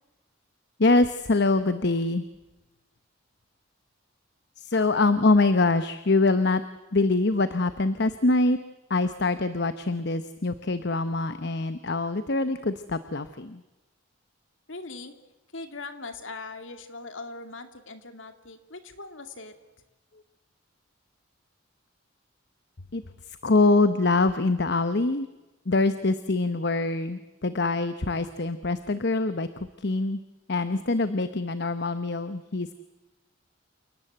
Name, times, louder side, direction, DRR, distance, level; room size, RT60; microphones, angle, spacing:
voice 1, 0.8-2.2 4.6-6.6 6.9-8.6 8.9-13.6 22.9-25.3 25.7-30.2 30.5-32.7, left 3 dB, 55° left, 11 dB, 1.0 m, -24 dB
voice 2, 4.7-5.0 14.7-15.1 15.5-19.5, left 3 dB, 75° left, 8 dB, 2.5 m, -40 dB
29.0 x 18.5 x 8.0 m, 1.0 s
head